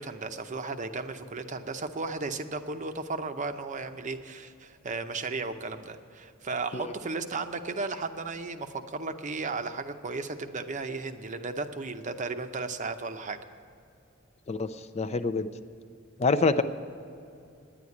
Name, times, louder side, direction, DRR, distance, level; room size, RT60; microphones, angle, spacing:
voice 1, 0.0-13.4, right 3 dB, 40° right, 8 dB, 0.7 m, -35 dB
voice 2, 14.9-15.5 16.2-16.6, left 3 dB, 30° left, 11 dB, 0.4 m, -25 dB
10.5 x 9.5 x 8.4 m, 2.5 s
head